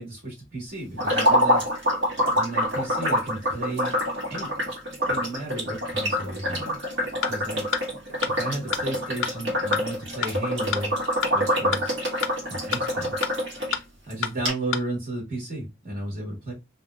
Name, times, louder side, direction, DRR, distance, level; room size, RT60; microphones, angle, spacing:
voice 1, 0.0-1.6 2.3-3.9 4.3-4.5 5.1-6.8 7.3-7.7 8.3-11.0 11.3-11.9 12.5-13.8 14.1-16.5, right 2 dB, 45° right, -2 dB, 1.7 m, -33 dB
sound 1, 1.0-13.7 14.1-14.2 14.4-14.5, equal, 65° right, 1.7 m, -26 dB
sound 2, 7.2-7.3 7.7-7.8 8.2-8.3 8.7-8.8 9.2-9.3 9.7-9.8 10.2-10.3 10.7-10.8 11.2-11.3 11.7-11.8 12.2-12.3 12.7-12.8 13.2-13.3 13.7-13.8 14.2-14.3 14.7-14.8, left 7 dB, 70° left, 0.4 m, -27 dB
3.3 x 2.7 x 2.4 m, 0.22 s
head